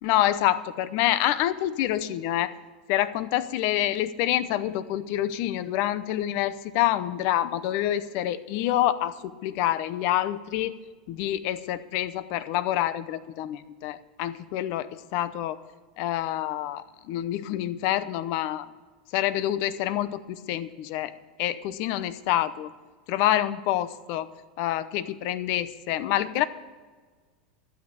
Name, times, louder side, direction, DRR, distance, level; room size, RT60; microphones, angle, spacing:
voice 1, 0.0-2.5 2.9-10.8 11.1-15.6 16.0-18.7 19.1-21.1 21.4-22.7 23.1-24.3 24.6-26.4, left 13 dB, 55° left, 15 dB, 0.7 m, -27 dB
12.5 x 8.9 x 7.2 m, 1.4 s
supercardioid pair, 120°, 5 cm